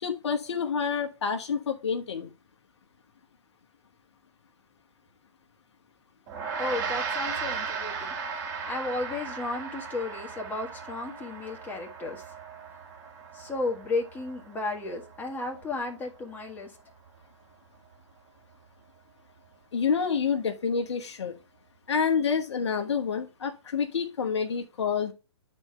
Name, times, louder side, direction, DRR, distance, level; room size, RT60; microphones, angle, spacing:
voice 1, 0.0-2.3 19.7-21.3 21.9-25.1, left 6 dB, 65° left, 1.2 m, -28 dB
Gong, 6.3-15.8, right 5 dB, 40° right, 2.7 m, -37 dB
voice 2, 6.6-8.1 8.7-12.2 13.3-16.7, left 3 dB, 10° left, 1.7 m, -33 dB
10.5 x 4.4 x 3.2 m
figure-of-eight pair, 120°, 15 cm